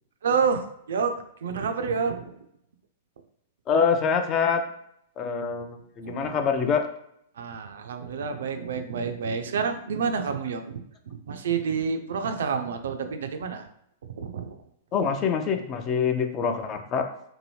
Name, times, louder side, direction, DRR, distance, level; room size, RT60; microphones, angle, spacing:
voice 1, 0.2-2.4 6.0-6.4 7.4-10.8 11.1-13.7 14.2-14.6, right 5 dB, 65° right, 7 dB, 0.3 m, -29 dB
voice 2, 3.7-4.6 5.2-6.8 14.9-17.3, left 6 dB, 30° left, 6 dB, 0.4 m, -25 dB
2.7 x 2.6 x 3.0 m, 0.73 s
figure-of-eight pair, 105°, 0 cm